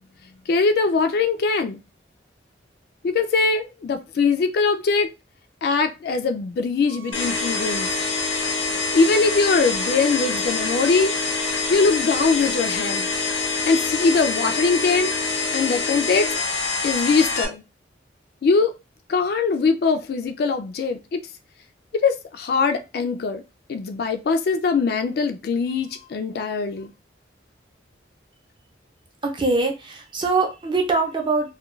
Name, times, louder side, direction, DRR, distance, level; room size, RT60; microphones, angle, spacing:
voice 1, 0.5-1.8 3.0-5.1 5.6-7.9 8.9-11.1 11.7-13.1 13.6-15.1 15.5-16.3 16.8-17.6 18.4-18.7 19.1-21.2 22.0-23.4 23.7-26.9, left 4 dB, 55° left, 0.3 m, -21 dB
sound 1, 6.9-11.9, right 9 dB, 80° right, 0.4 m, -42 dB
sound 2, 7.1-17.5, left 4 dB, 90° left, 0.7 m, -25 dB
voice 2, 29.2-31.5, right 3 dB, 25° right, 0.5 m, -23 dB
2.3 x 2.2 x 3.0 m
head